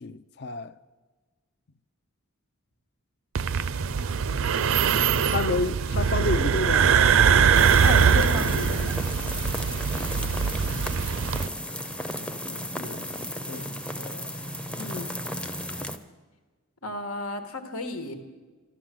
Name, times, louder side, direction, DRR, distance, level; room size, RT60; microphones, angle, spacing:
voice 1, 0.0-0.7 5.3-7.0 12.2-14.5, left 3 dB, 50° left, 0.5 m, -32 dB
sound 1, 3.4-11.5, right 6 dB, 65° right, 0.5 m, -22 dB
sound 2, 7.5-16.0, equal, 5° left, 0.6 m, -34 dB
voice 2, 7.8-9.0 14.8-15.1 16.8-18.2, left 3 dB, 90° left, 1.5 m, -33 dB
13.0 x 13.0 x 7.6 m
head